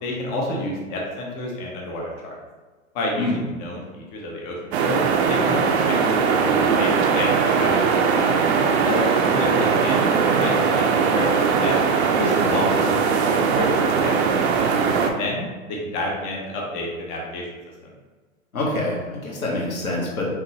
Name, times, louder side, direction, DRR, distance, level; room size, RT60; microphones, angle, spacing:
voice 1, 0.0-2.4 2.9-5.0 5.3-5.6 5.8-5.9 6.3-7.9 8.8-9.0 9.3-10.9 11.1-11.8 12.2-14.4 15.2-17.5 17.8-17.9, left 1 dB, 15° left, -2 dB, 0.4 m, -29 dB
sound 1, 4.7-15.1, right 5 dB, 50° right, 0.6 m, -20 dB
voice 2, 12.3-12.6 14.8-15.1 18.5-20.3, left 2 dB, 80° left, -3 dB, 1.5 m, -26 dB
5.4 x 2.5 x 3.0 m, 1.3 s
figure-of-eight pair, 115°, 42 cm